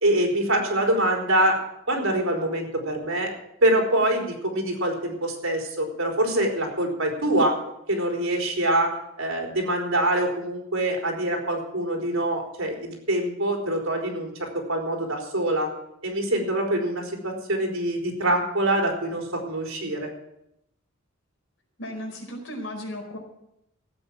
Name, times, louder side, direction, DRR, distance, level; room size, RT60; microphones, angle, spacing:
voice 1, 0.0-1.6 1.9-3.3 3.6-7.6 7.9-15.7 16.0-20.1, right 1 dB, 75° right, 1 dB, 4.1 m, -25 dB
voice 2, 21.8-23.2, left 1 dB, 65° left, 1 dB, 4.8 m, -35 dB
16.0 x 8.8 x 7.5 m, 0.81 s
head